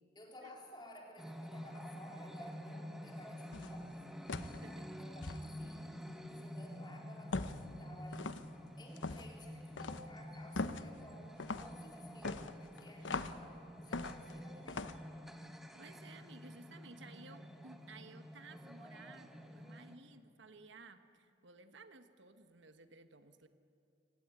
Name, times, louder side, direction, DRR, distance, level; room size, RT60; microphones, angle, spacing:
voice 1, 0.1-4.1 4.7-8.3 8.8-14.9, left 1 dB, 25° left, 0 dB, 3.9 m, -56 dB
sound 1, 1.2-19.9, equal, ahead, 1.4 m, -49 dB
sound 2, 3.5-3.8 4.3-4.6 5.2-5.4 7.3-7.7 8.1-8.5 9.0-9.3 9.8-10.1 10.5-10.9 11.4-11.7 12.2-13.4 13.9-14.3 14.7-15.0, left 3 dB, 80° left, 0.9 m, -40 dB
voice 2, 4.5-4.8 15.7-23.5, right 3 dB, 75° right, 9 dB, 1.3 m, -56 dB
24.5 x 17.5 x 9.7 m, 2.5 s
head